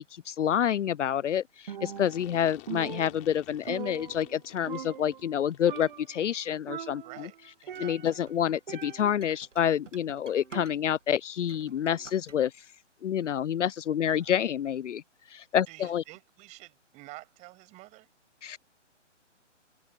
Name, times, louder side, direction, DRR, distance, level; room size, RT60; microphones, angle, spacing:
voice 1, 0.0-7.3 7.8-12.5 13.0-15.0 15.3-16.0 18.4-18.6, left 9 dB, 75° left, 0.5 m, -28 dB
Percussion, 1.7-2.4 2.7-4.4 4.7-5.4 5.7-6.2 6.7-8.3 8.7-9.3, right 9 dB, 40° right, 1.1 m, -41 dB
sound 1, 1.9-6.1, left 23 dB, 20° left, 5.8 m, -51 dB
voice 2, 7.0-7.4 7.6-8.2 14.1-14.4 15.7-18.1, right 20 dB, 20° right, 6.3 m, -49 dB
sound 2, 7.7-11.1 11.4-12.4, right 5 dB, 80° right, 1.6 m, -49 dB
figure-of-eight pair, 145°, 37 cm